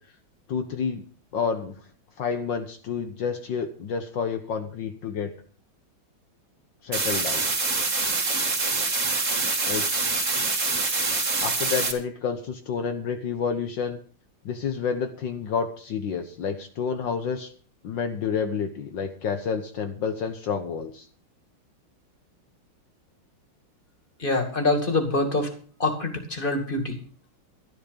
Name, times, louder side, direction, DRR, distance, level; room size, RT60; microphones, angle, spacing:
voice 1, 0.5-1.1 1.3-1.8 2.2-5.3 6.8-7.4 9.7-9.9 11.4-14.0 14.5-17.5 17.8-21.1, left 6 dB, 65° left, 6 dB, 1.7 m, -29 dB
sound 1, 6.9-11.9, right 3 dB, 40° right, 2.6 m, -25 dB
voice 2, 24.2-25.5 25.8-26.9, left 2 dB, 25° left, 5 dB, 2.5 m, -25 dB
12.5 x 12.0 x 5.2 m, 0.42 s
omnidirectional pair, 2.2 m